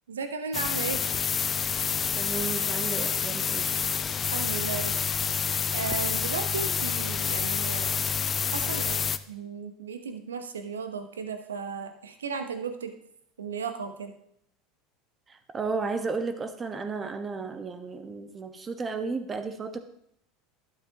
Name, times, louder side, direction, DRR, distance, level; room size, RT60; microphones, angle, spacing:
voice 1, 0.1-1.0 4.2-5.1 5.7-8.2 8.5-12.9 13.4-14.1, right 5 dB, 85° right, 8 dB, 1.0 m, -35 dB
sound 1, 0.5-9.2, left 7 dB, 30° left, 0.5 m, -28 dB
voice 2, 2.2-3.7 15.3-19.8, right 4 dB, 25° right, 8 dB, 1.2 m, -33 dB
12.0 x 10.5 x 2.9 m, 0.71 s
hypercardioid pair, 80°, 0 cm